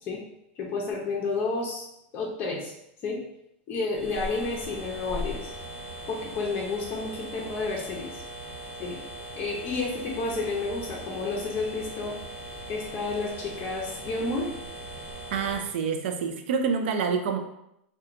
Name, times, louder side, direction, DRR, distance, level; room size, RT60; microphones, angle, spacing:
voice 1, 0.6-1.9 2.1-2.7 3.0-3.2 3.7-5.5 6.1-8.2 8.8-9.0 9.4-12.1 12.7-14.5, left 3 dB, 35° left, -4 dB, 0.6 m, -31 dB
sound 1, 3.9-15.6, equal, 45° right, 1.2 m, -39 dB
voice 2, 15.3-17.4, right 5 dB, 70° right, 6 dB, 0.4 m, -27 dB
2.7 x 2.2 x 2.5 m, 0.80 s
hypercardioid pair, 120°, 6 cm